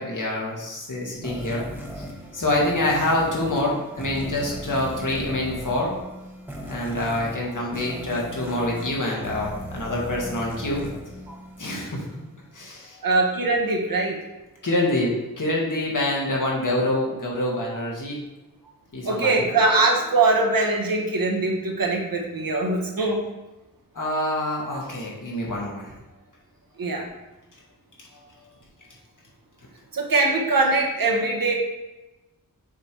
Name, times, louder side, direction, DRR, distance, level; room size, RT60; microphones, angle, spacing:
voice 1, 0.0-1.7 2.0-2.1 2.3-5.9 6.6-10.9 11.6-12.0 12.5-13.0 14.6-18.2 18.9-19.5 24.0-25.9, left 1 dB, 60° left, -3 dB, 1.9 m, -26 dB
sound 1, 1.2-12.0, right 1 dB, 5° right, 1.4 m, -37 dB
voice 2, 13.0-14.2 19.0-23.2 26.8-27.0 29.9-31.5, right 3 dB, 70° right, 0 dB, 1.3 m, -22 dB
6.8 x 3.4 x 4.5 m, 1.0 s
wide cardioid pair, 60°, 36 cm